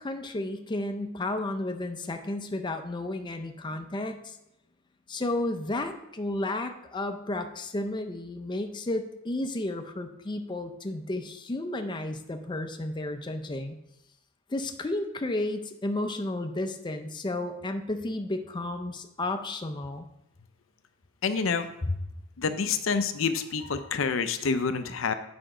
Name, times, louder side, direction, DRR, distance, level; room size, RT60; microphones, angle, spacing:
voice 1, 0.0-4.4 5.1-13.8 14.5-20.1 21.9-22.0, left 2 dB, 20° left, 6 dB, 0.5 m, -32 dB
voice 2, 21.2-21.7 22.4-25.1, left 5 dB, 65° left, 10 dB, 0.6 m, -27 dB
7.9 x 5.1 x 4.9 m, 0.87 s
head